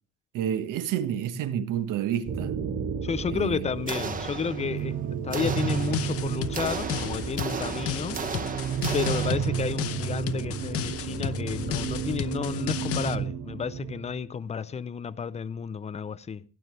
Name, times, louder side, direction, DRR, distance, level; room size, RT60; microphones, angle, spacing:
voice 1, 0.3-2.6 3.3-3.7, right 10 dB, 75° right, 1.3 m, -29 dB
sound 1, 2.3-14.2, right 7 dB, 50° right, 2.2 m, -32 dB
voice 2, 3.0-5.0 5.2-8.2 8.9-16.4, left 6 dB, 20° left, 0.5 m, -32 dB
sound 2, 3.9-4.9 5.3-9.8, right 4 dB, 25° right, 1.0 m, -36 dB
sound 3, 5.5-13.2, left 10 dB, 45° left, 0.7 m, -34 dB
16.5 x 11.5 x 3.2 m
cardioid pair, 170°, 32 cm